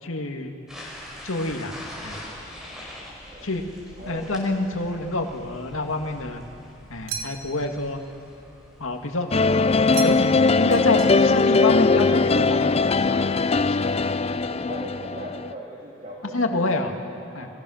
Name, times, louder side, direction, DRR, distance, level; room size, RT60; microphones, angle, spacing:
voice 1, 0.0-0.5 1.2-1.8 2.0-2.2 3.4-3.6 4.1-6.4 6.9-8.0 8.8-9.3 10.0-13.3 13.6-13.9 16.3-16.9 17.3-17.5, left 2 dB, 80° left, 3 dB, 2.2 m, -27 dB
sound 1, 0.7-12.1, left 1 dB, 5° right, 5.2 m, -44 dB
sound 2, 7.1-7.7 9.9-10.4 10.7-11.5, right 6 dB, 80° right, 1.9 m, -36 dB
sound 3, 9.3-15.5, left 4 dB, 30° left, 0.5 m, -20 dB
voice 2, 14.5-17.5, right 1 dB, 35° right, -4 dB, 3.1 m, -39 dB
29.5 x 22.0 x 6.5 m, 2.9 s
head